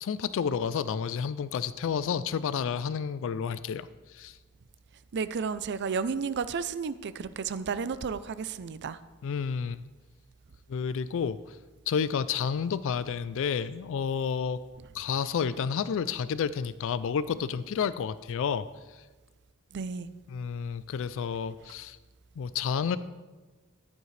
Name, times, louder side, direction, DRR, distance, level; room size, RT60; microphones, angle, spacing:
voice 1, 0.0-4.4 9.2-9.8 10.7-11.6 11.9-14.6 14.9-19.0 20.3-22.0 22.4-23.0, left 6 dB, 65° left, 15 dB, 0.3 m, -30 dB
voice 2, 5.1-9.0 19.7-20.1, right 5 dB, 55° right, 14 dB, 0.5 m, -32 dB
14.0 x 10.5 x 3.3 m, 1.3 s
head